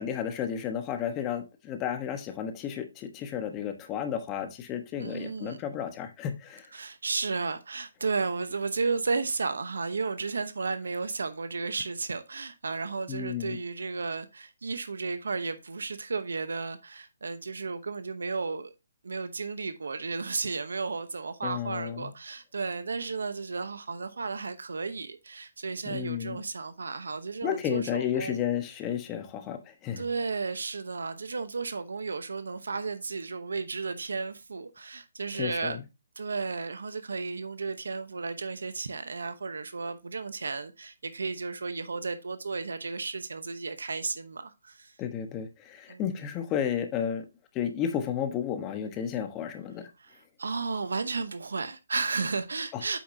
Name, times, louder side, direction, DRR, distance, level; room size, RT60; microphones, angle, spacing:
voice 1, 0.0-6.7 13.1-13.6 21.4-22.1 25.9-26.4 27.4-30.0 35.4-35.8 45.0-47.2 47.5-49.9 52.7-52.8, left 9 dB, 20° left, 1.1 m, -32 dB
voice 2, 5.0-5.6 6.7-18.7 19.0-28.4 30.0-35.8 36.2-44.9 45.9-46.0 50.0-53.0, right 4 dB, 80° right, 0.9 m, -33 dB
8.4 x 5.8 x 2.7 m
hypercardioid pair, 155°, 0 cm